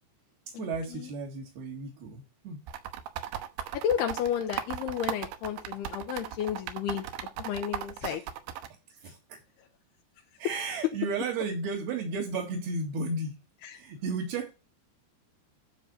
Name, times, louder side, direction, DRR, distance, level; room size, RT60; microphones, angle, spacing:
voice 1, 0.5-2.7 8.0-8.3 8.9-9.4 10.4-13.4 13.7-14.5, right 3 dB, 65° right, 3.8 m, -34 dB
sound 1, 2.7-8.7, right 10 dB, 80° right, 3.2 m, -36 dB
voice 2, 3.8-7.0 7.5-8.2, left 9 dB, 80° left, 2.7 m, -31 dB
13.0 x 5.6 x 4.3 m
omnidirectional pair, 5.0 m